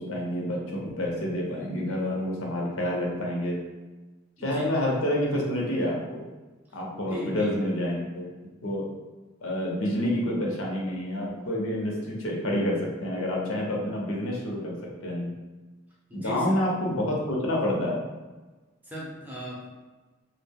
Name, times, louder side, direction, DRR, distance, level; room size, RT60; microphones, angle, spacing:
voice 1, 0.0-3.6 4.4-6.2 6.7-8.3 8.6-8.8 9.4-14.7 15.0-15.3 16.1-18.0, left 1 dB, 90° left, -2 dB, 0.7 m, -28 dB
voice 2, 7.1-7.5 16.1-16.7 18.9-19.7, equal, 10° right, -5 dB, 0.5 m, -37 dB
2.3 x 2.0 x 3.4 m, 1.2 s
head